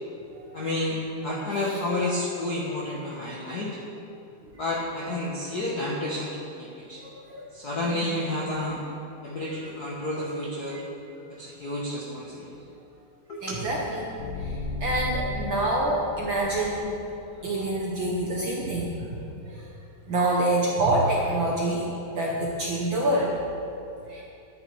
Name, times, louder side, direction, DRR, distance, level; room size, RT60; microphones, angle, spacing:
voice 1, 0.5-3.8 4.6-7.0 7.5-8.8 9.2-10.8 11.3-12.6 13.3-13.6, left 1 dB, 60° left, -4 dB, 1.0 m, -30 dB
voice 2, 7.0-7.5 7.9-8.2 10.7-10.8 13.4-14.1 14.4-14.5 14.8-16.9 17.4-19.2 19.5-19.6 20.1-21.8 22.1-23.3 24.1-24.2, right 1 dB, 60° right, -3 dB, 1.3 m, -26 dB
sound 1, 14.2-17.3, left 2 dB, 85° left, 2.5 m, -35 dB
11.5 x 10.0 x 4.6 m, 2.8 s
omnidirectional pair, 3.5 m